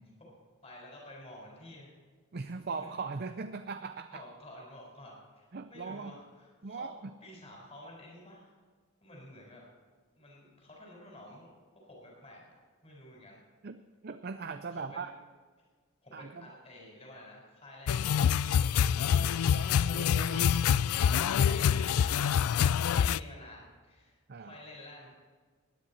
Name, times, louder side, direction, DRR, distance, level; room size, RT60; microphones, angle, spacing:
voice 1, 0.2-1.9 2.8-2.9 4.1-6.9 7.2-8.5 9.0-9.6 10.2-11.5 11.8-12.4 12.8-13.4 14.7-15.1 16.0-20.8 21.1-25.1, left 1 dB, 30° left, -2 dB, 4.3 m, -51 dB
voice 2, 2.3-4.2 5.5-6.1 6.6-7.1 13.6-15.1 16.1-16.5 19.9-20.4 22.6-22.7 24.3-24.6, right 4 dB, 45° right, 8 dB, 0.5 m, -40 dB
sound 1, 17.9-23.2, left 8 dB, 80° left, 0.3 m, -26 dB
20.0 x 10.0 x 4.2 m, 1.5 s
head